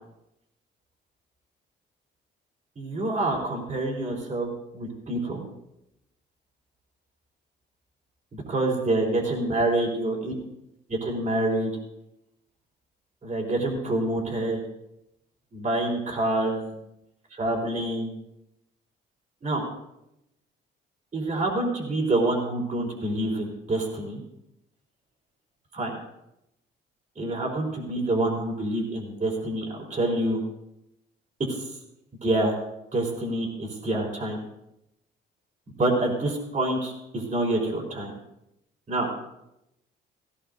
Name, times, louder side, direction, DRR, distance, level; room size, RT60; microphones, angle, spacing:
voice 1, 2.8-5.4 8.3-10.3 10.9-11.7 13.2-14.6 15.5-16.7 17.3-18.1 19.4-19.6 21.1-24.2 25.7-26.0 27.2-30.4 31.5-31.7 32.2-32.6 32.9-34.4 35.8-38.1 38.9-39.1, right 2 dB, 40° right, 0 dB, 4.0 m, -27 dB
17.0 x 16.5 x 2.7 m, 0.85 s
cardioid pair, 90°, 20 cm